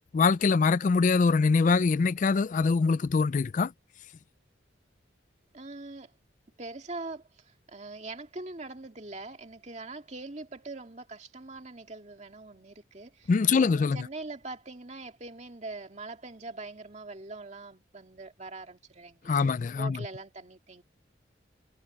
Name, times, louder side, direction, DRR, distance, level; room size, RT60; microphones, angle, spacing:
voice 1, 0.1-3.7 13.3-14.0 19.3-20.0, left 4 dB, 40° left, 0.3 m, -23 dB
voice 2, 5.5-6.1 6.6-19.5 19.8-20.8, right 2 dB, 40° right, 2.2 m, -42 dB
head